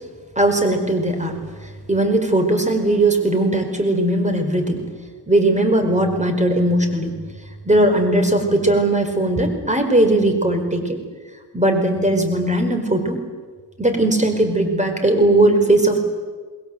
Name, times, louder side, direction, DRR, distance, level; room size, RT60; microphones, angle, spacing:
voice 1, 0.3-4.9 5.3-7.1 7.6-11.0 11.5-13.2 13.8-16.0, right 1 dB, 15° right, 6 dB, 4.9 m, -18 dB
27.0 x 21.0 x 8.0 m, 1.5 s
cardioid pair, 75°, 40 cm